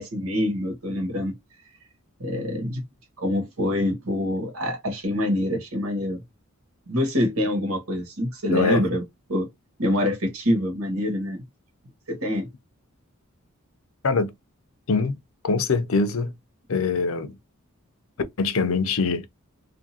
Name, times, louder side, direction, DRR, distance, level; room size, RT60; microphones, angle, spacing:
voice 1, 0.0-1.3 2.2-2.8 3.2-6.2 6.9-9.0 9.3-9.5 9.8-11.4 12.1-12.5, left 1 dB, 80° right, 1.3 m, -25 dB
voice 2, 8.5-8.8 14.0-14.3 14.9-15.2 15.4-16.3 16.7-17.4 18.4-19.3, left 4 dB, 70° left, 0.6 m, -23 dB
2.6 x 2.5 x 2.7 m
head